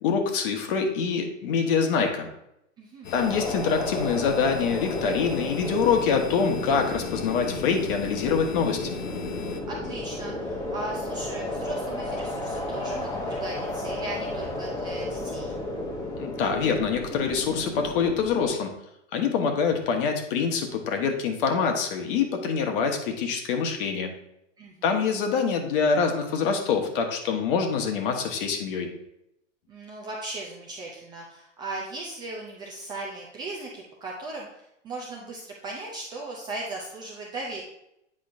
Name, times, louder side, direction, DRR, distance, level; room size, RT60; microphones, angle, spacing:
voice 1, 0.0-2.3 3.1-8.8 16.2-18.7 19.1-24.1 24.8-28.9, left 6 dB, 45° left, 5 dB, 1.1 m, -25 dB
voice 2, 2.8-3.1 9.6-15.5 24.6-25.0 29.7-37.6, right 2 dB, 10° right, -2 dB, 0.4 m, -37 dB
sound 1, 3.0-9.6, left 6 dB, 75° left, 0.9 m, -38 dB
sound 2, 3.2-18.5, left 1 dB, 10° left, 0.9 m, -33 dB
8.6 x 5.0 x 2.5 m, 0.82 s
hypercardioid pair, 125°, 38 cm